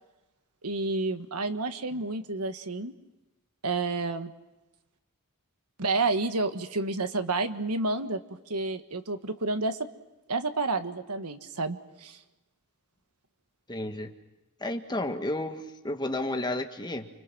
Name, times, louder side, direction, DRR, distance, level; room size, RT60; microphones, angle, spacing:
voice 1, 0.6-2.9 3.6-4.3 5.8-8.2 8.5-9.8 10.3-12.2, right 3 dB, 85° right, 9 dB, 1.5 m, -30 dB
voice 2, 13.7-14.1 14.6-17.1, left 1 dB, 20° left, 5 dB, 1.6 m, -32 dB
30.0 x 25.5 x 6.2 m, 1.0 s
head